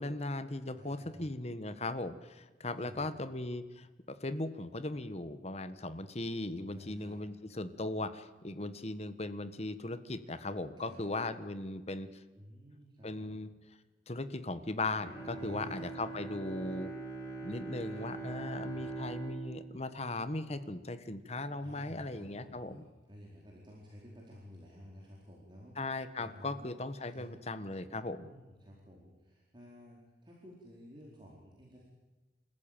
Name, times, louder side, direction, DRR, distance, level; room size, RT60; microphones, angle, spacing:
voice 1, 0.0-12.1 13.0-13.5 14.1-16.9 17.4-22.8 25.8-28.3, left 2 dB, 35° left, 12 dB, 1.4 m, -38 dB
voice 2, 0.7-1.3 2.8-3.3 6.7-7.2 10.8-11.0 12.3-13.4 15.4-16.0 18.6-19.0 21.6-26.8 27.1-27.3 28.2-31.8, equal, 25° right, -3 dB, 4.3 m, -53 dB
Bowed string instrument, 14.8-21.1 21.5-21.6, right 3 dB, 15° left, 8.0 m, -43 dB
29.0 x 14.5 x 9.0 m, 1.2 s
head